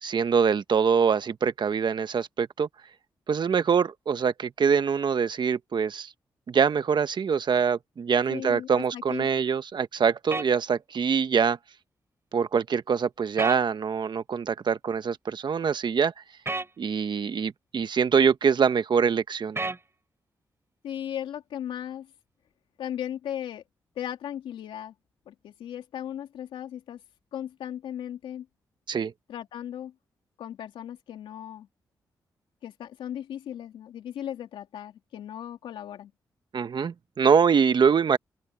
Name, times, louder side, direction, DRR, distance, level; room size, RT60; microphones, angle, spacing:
voice 1, 0.0-2.7 3.3-6.1 6.5-11.6 12.3-16.1 16.8-19.6 28.9-29.1 36.5-38.2, right 6 dB, 60° right, 1.3 m, -24 dB
voice 2, 8.3-9.3 20.8-22.1 22.8-23.6 23.9-24.9 25.3-27.0 27.3-28.5 29.3-29.9 30.4-31.7 32.6-36.1, left 10 dB, 85° left, 3.2 m, -37 dB
sound 1, 10.3-10.5 13.4-13.6 16.5-16.7 19.6-19.8, right 3 dB, 30° right, 3.8 m, -30 dB
open air
supercardioid pair, 50°, 9 cm